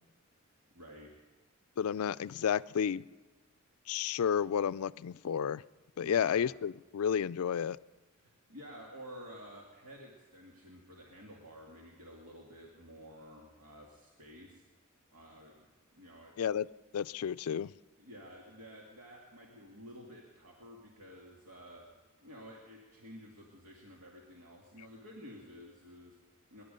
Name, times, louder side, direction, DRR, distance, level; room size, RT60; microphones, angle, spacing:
voice 1, 0.5-1.1 6.0-6.4 8.1-14.6 15.1-16.4 18.0-21.8 22.2-26.6, equal, 90° right, -2 dB, 2.2 m, -52 dB
voice 2, 1.8-3.0 3.9-5.6 6.0-7.8 16.4-16.7 16.9-17.7, left 8 dB, 80° left, 17 dB, 0.4 m, -31 dB
22.0 x 11.5 x 5.2 m, 1.3 s
head